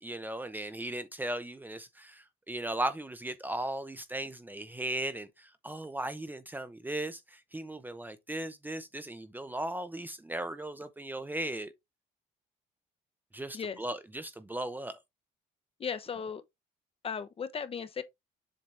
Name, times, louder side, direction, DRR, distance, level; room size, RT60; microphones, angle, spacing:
voice 1, 0.0-11.7 13.3-15.0, right 1 dB, 10° right, 0.7 m, -37 dB
voice 2, 15.8-16.4 17.0-18.0, left 6 dB, 35° left, 0.9 m, -36 dB
7.4 x 4.0 x 3.3 m
cardioid pair, 110°, 17 cm